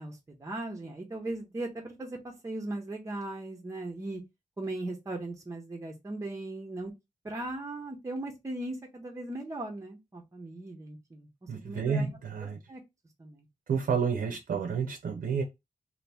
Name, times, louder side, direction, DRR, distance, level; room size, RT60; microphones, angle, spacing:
voice 1, 0.0-4.2 4.6-6.9 7.2-12.1 12.4-12.8 13.2-13.4, right 2 dB, 20° right, 0.6 m, -38 dB
voice 2, 11.5-12.6 13.7-15.4, right 6 dB, 80° right, 0.5 m, -30 dB
2.7 x 2.6 x 3.3 m
wide cardioid pair, 140°, 14 cm